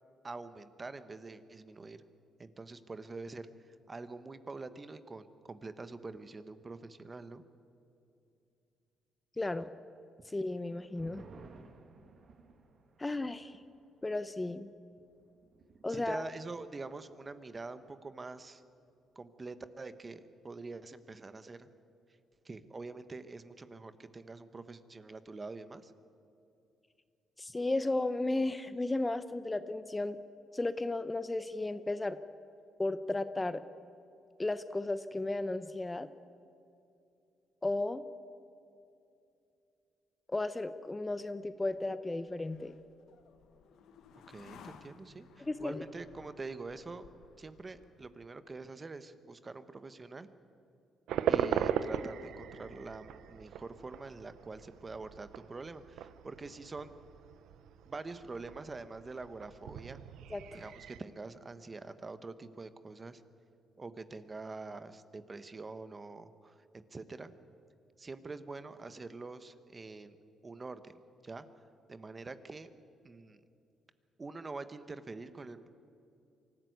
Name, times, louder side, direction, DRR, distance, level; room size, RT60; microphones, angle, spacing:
voice 1, 0.2-2.0 2.4-7.4 15.9-18.6 19.1-21.7 22.4-25.9 44.3-47.1 47.4-50.3 51.2-56.9 57.9-60.0 60.5-63.2 63.8-66.6 66.9-67.3 68.0-70.2 70.4-71.4 71.9-72.7 73.0-73.4 74.2-75.7, right 3 dB, 30° right, 12 dB, 1.2 m, -45 dB
voice 2, 9.4-9.7 10.2-11.3 13.0-13.6 14.0-14.7 15.8-16.3 27.4-30.2 30.5-32.2 32.8-33.6 34.4-36.1 37.6-38.0 40.3-42.7 45.4-45.8 60.3-60.6, left 2 dB, 15° left, 12 dB, 0.7 m, -34 dB
sound 1, 10.4-17.3 17.6-17.7 18.1-18.6, right 4 dB, 55° right, 2.0 m, -58 dB
sound 2, 41.1-48.5, left 7 dB, 80° left, 1.4 m, -59 dB
sound 3, 51.1-61.0, right 9 dB, 80° right, 0.8 m, -38 dB
24.5 x 14.0 x 9.5 m, 2.6 s
cardioid pair, 90°, 0 cm